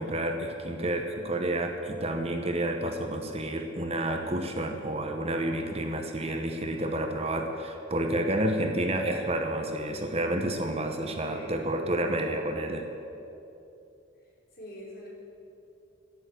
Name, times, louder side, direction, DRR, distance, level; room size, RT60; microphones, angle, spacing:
voice 1, 0.0-12.8, right 1 dB, 30° right, 4 dB, 1.0 m, -30 dB
voice 2, 11.2-11.7 14.5-15.1, equal, 55° left, -4 dB, 4.0 m, -44 dB
12.5 x 11.0 x 7.9 m, 2.8 s
head